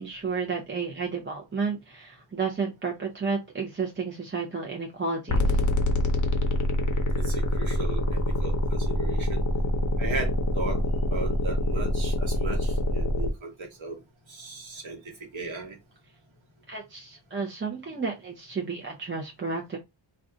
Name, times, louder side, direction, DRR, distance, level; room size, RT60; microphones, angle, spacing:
voice 1, 0.0-5.6 16.7-19.8, right 4 dB, 25° right, -1 dB, 0.6 m, -32 dB
sound 1, 5.3-13.3, left 1 dB, 40° left, 0.6 m, -25 dB
voice 2, 7.2-9.4 10.0-10.8 11.1-14.0 14.3-15.0 15.3-15.8, right 3 dB, 80° right, 2 dB, 1.2 m, -36 dB
2.5 x 2.2 x 3.7 m, 0.22 s
wide cardioid pair, 85°, 46 cm